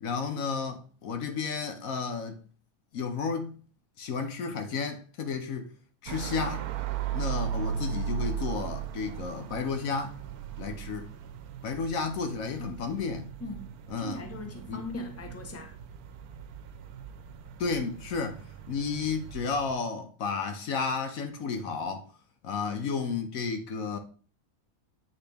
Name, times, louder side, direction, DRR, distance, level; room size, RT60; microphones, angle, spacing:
voice 1, 0.0-2.4 2.9-3.6 4.0-5.7 6.0-6.7 7.1-10.2 10.6-11.1 11.6-13.3 13.9-14.2 14.7-14.9 17.6-22.1 22.4-24.0, left 5 dB, 70° left, 1.1 m, -32 dB
sound 1, 6.1-19.7, right 8 dB, 85° right, 1.1 m, -37 dB
voice 2, 13.4-15.7, left 1 dB, 15° left, 0.7 m, -40 dB
8.1 x 3.9 x 3.4 m
omnidirectional pair, 1.5 m